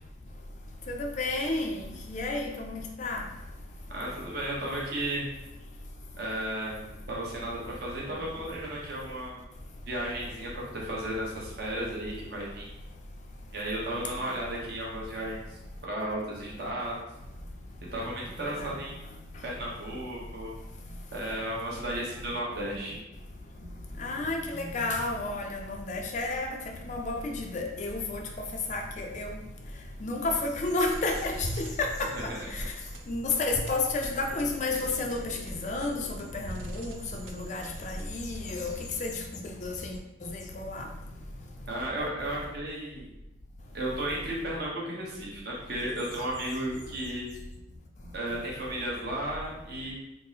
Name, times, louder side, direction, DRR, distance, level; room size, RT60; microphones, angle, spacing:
voice 1, 0.9-3.2 14.2-14.3 18.6-18.7 24.0-26.6 26.8-28.2 28.7-29.3 30.0-32.1 32.5-32.6 33.1-38.7 39.0-39.1 39.6-40.9, left 2 dB, 35° left, 2 dB, 0.4 m, -31 dB
voice 2, 3.9-5.3 6.2-9.4 9.8-12.7 13.5-16.9 17.9-19.0 19.4-20.5 21.1-23.0 32.3-32.4 41.7-43.1 43.7-47.3 48.1-49.9, right 1 dB, 50° right, -4 dB, 1.0 m, -34 dB
sound 1, 30.8-39.2, right 1 dB, 80° right, 0.5 m, -41 dB
3.6 x 2.0 x 4.0 m, 0.93 s
head